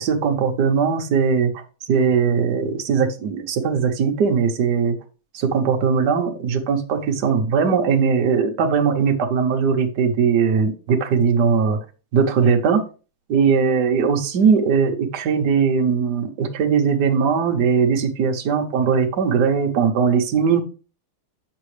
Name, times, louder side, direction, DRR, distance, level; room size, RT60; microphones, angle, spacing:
voice 1, 0.0-1.5 1.9-5.0 5.3-11.8 12.1-12.8 13.3-20.6, right 6 dB, 55° right, 3 dB, 1.5 m, -19 dB
8.1 x 6.9 x 3.2 m, 0.35 s
omnidirectional pair, 2.3 m